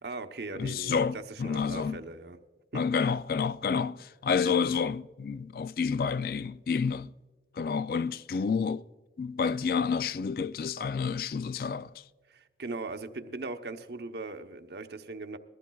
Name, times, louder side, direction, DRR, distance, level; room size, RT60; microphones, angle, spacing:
voice 1, 0.0-2.4 2.7-2.8 4.4-4.6 12.3-15.4, right 3 dB, 70° right, 0.9 m, -39 dB
voice 2, 0.6-2.0 2.7-7.1 7.5-8.8 9.2-12.0, left 5 dB, 55° left, 0.3 m, -29 dB
22.0 x 14.5 x 2.3 m
head